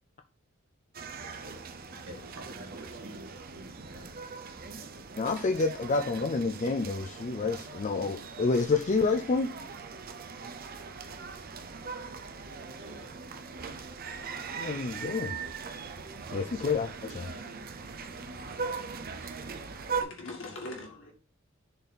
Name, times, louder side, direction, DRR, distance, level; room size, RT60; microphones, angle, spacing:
sound 1, 0.9-20.0, right 5 dB, 45° right, 0.6 m, -40 dB
voice 1, 2.1-4.6 12.8-13.1, right 1 dB, 65° right, 2.0 m, -48 dB
voice 2, 5.2-9.5 14.6-15.4 16.3-17.4, left 4 dB, 35° left, 0.4 m, -29 dB
voice 3, 20.0-21.1, left 2 dB, 60° left, 2.1 m, -41 dB
6.8 x 4.1 x 4.1 m
head